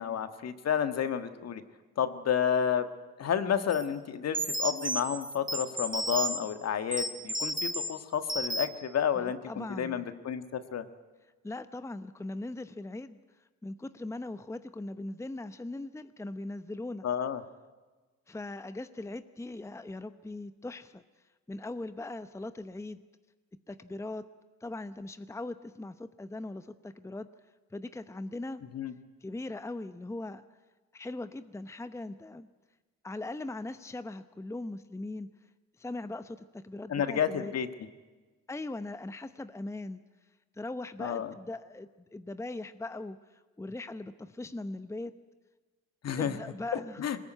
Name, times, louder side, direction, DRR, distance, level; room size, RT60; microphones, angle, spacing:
voice 1, 0.0-1.6 2.0-2.8 3.2-10.8 17.0-17.4 28.7-28.9 36.9-37.7 41.0-41.3 46.0-46.4 47.0-47.2, left 8 dB, 55° left, 9 dB, 1.7 m, -30 dB
sound 1, 3.7-3.8 4.3-6.4 6.9-7.9 8.3-8.8, right 2 dB, 25° right, 1.5 m, -33 dB
voice 2, 9.1-10.1 11.4-13.2 13.6-17.1 18.3-21.0 21.5-23.0 23.7-24.2 24.6-27.3 27.7-28.6 29.2-30.4 30.9-32.5 33.0-35.3 35.8-37.5 38.5-40.0 40.6-45.1 46.2-47.0, left 2 dB, 10° left, 11 dB, 0.8 m, -40 dB
22.0 x 20.0 x 9.2 m, 1.3 s
cardioid pair, 90°, 30 cm